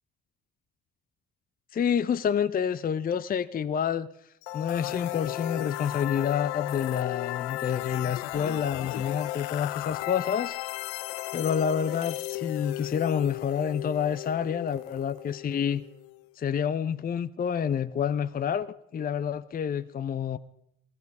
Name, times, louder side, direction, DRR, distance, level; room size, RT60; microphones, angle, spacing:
voice 1, 1.7-4.1 4.5-10.6 11.3-15.8 16.4-20.4, left 8 dB, 30° left, 14 dB, 0.6 m, -28 dB
sound 1, 4.4-16.2, left 18 dB, 85° left, 0.5 m, -35 dB
16.5 x 12.0 x 5.4 m, 0.80 s
hypercardioid pair, 60°, 30 cm